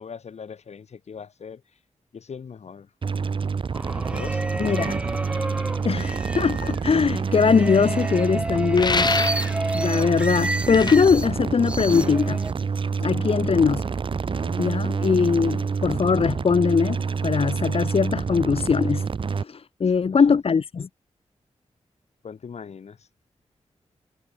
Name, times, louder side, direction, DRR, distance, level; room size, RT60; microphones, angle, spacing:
voice 1, 0.0-1.6 2.1-2.9 4.0-5.2 10.0-10.1 13.2-13.6 14.3-14.6 19.8-20.4 22.2-23.1, left 6 dB, 75° left, 7.2 m, -41 dB
sound 1, 3.0-19.4, right 5 dB, 50° right, 0.9 m, -27 dB
sound 2, 3.7-6.8 7.3-11.3 11.6-12.5, right 1 dB, 10° right, 2.4 m, -31 dB
voice 2, 4.6-4.9 5.8-9.1 9.7-12.4 13.0-13.8 14.6-19.0 19.3-20.9, left 5 dB, 60° left, 1.7 m, -21 dB
sound 3, 8.7-9.6 10.7-11.0, left 4 dB, 40° left, 3.5 m, -25 dB
wide cardioid pair, 125°, 11 cm